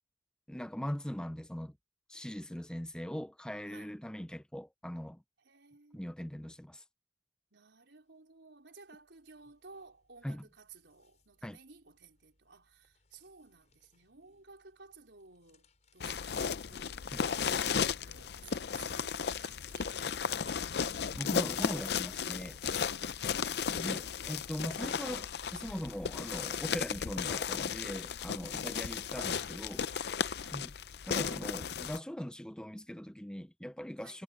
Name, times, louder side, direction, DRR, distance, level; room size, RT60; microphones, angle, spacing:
voice 1, 0.5-1.7 2.1-5.2 5.9-6.8 10.2-10.4 11.4-11.6 17.1-17.2 21.2-22.6 23.7-29.8 30.5-30.7 31.0-34.2, equal, 5° left, 0.5 m, -41 dB
voice 2, 3.7-4.0 5.4-6.1 7.5-20.8 22.8-24.1 28.2-29.2 29.9-30.7 34.0-34.2, right 4 dB, 80° right, 4.2 m, -57 dB
sound 1, 8.0-8.2 8.5-21.9, left 2 dB, 40° left, 6.9 m, -72 dB
sound 2, 16.0-32.0, left 6 dB, 60° left, 0.5 m, -35 dB
head